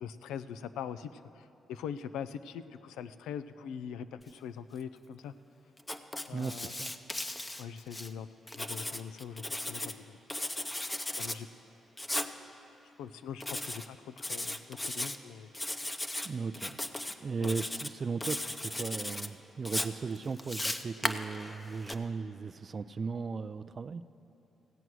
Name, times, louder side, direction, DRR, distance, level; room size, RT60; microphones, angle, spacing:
voice 1, 0.0-5.3 6.3-6.7 7.6-8.3 8.5-10.2 11.2-11.5 13.0-15.5 17.4-17.6, left 8 dB, 85° left, 12 dB, 0.4 m, -42 dB
Writing, 5.8-8.1 8.5-10.0 10.3-11.4 12.0-12.3 13.4-13.9 14.2-15.2 15.5-16.3 16.5-17.1 17.4-17.9 18.2-19.3 19.7-21.9, left 1 dB, 20° left, 0.7 m, -36 dB
voice 2, 6.3-6.9 16.2-16.8 17.2-24.0, right 5 dB, 50° right, 12 dB, 0.4 m, -37 dB
15.5 x 8.0 x 6.2 m, 2.9 s
supercardioid pair, 55°, 0 cm